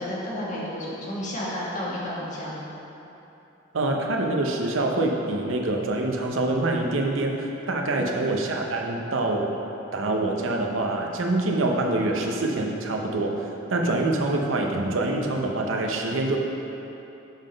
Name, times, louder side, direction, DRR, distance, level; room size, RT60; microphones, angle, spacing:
voice 1, 0.0-2.6 7.9-8.1, left 1 dB, 40° left, -6 dB, 1.4 m, -31 dB
voice 2, 3.7-9.5 9.9-13.4 13.7-16.4, right 2 dB, 80° right, 1 dB, 0.7 m, -25 dB
7.2 x 3.8 x 5.1 m, 3.0 s
head